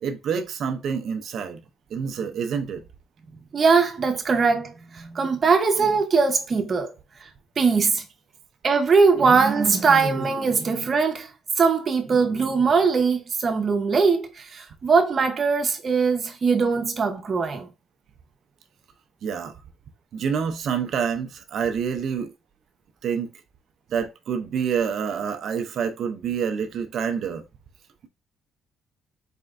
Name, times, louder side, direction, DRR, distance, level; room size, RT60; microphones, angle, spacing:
voice 1, 0.0-1.6 1.9-2.8 19.2-19.6 20.1-22.3 23.0-23.3 23.9-27.4, right 7 dB, 65° right, 0.5 m, -27 dB
voice 2, 3.5-6.9 7.6-8.0 8.6-11.3 11.6-17.7, right 5 dB, 40° right, 0.9 m, -21 dB
4.2 x 3.3 x 2.5 m
cardioid pair, 115°, 0 cm